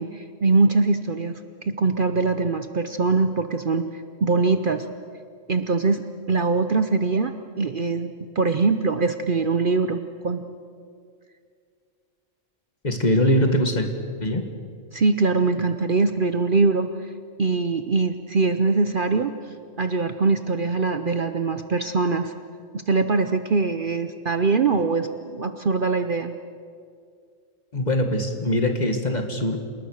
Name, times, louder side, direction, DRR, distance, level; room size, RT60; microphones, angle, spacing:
voice 1, 0.0-3.9 4.2-4.8 5.5-6.0 6.3-10.4 14.9-16.9 17.4-19.3 19.8-22.3 22.9-26.3, right 4 dB, 45° right, 9 dB, 0.9 m, -22 dB
voice 2, 12.8-13.9 14.2-14.5 27.7-29.6, left 1 dB, 35° left, 5 dB, 2.0 m, -22 dB
28.0 x 19.5 x 6.5 m, 2.2 s
omnidirectional pair, 1.3 m